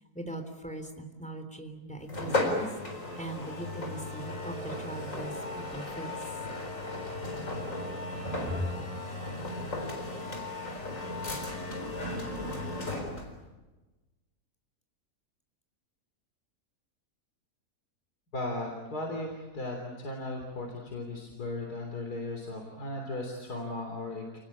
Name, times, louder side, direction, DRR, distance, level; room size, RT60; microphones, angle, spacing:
voice 1, 0.1-2.7 3.2-6.2 8.0-8.7, equal, 5° left, 5 dB, 3.3 m, -40 dB
sound 1, 2.1-13.4, left 2 dB, 55° left, 4.8 m, -35 dB
voice 2, 18.3-24.4, left 2 dB, 80° left, 1 dB, 4.1 m, -36 dB
29.5 x 20.0 x 8.7 m, 1.1 s
omnidirectional pair, 1.6 m